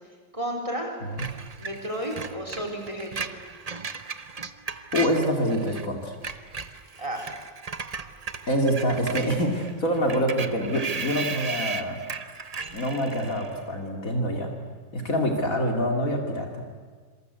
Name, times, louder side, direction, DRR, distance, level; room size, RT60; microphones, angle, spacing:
voice 1, 0.3-1.0 1.6-3.3 7.0-7.3, right 1 dB, 15° right, 3 dB, 4.4 m, -32 dB
voice 2, 1.0-1.4 4.9-6.1 8.5-12.0 12.7-14.6 14.9-16.6, equal, 45° left, 2 dB, 3.0 m, -26 dB
Screech, 1.2-5.9 6.1-13.6, right 4 dB, 35° right, 0.6 m, -36 dB
26.5 x 24.5 x 8.3 m, 1.5 s
omnidirectional pair, 2.0 m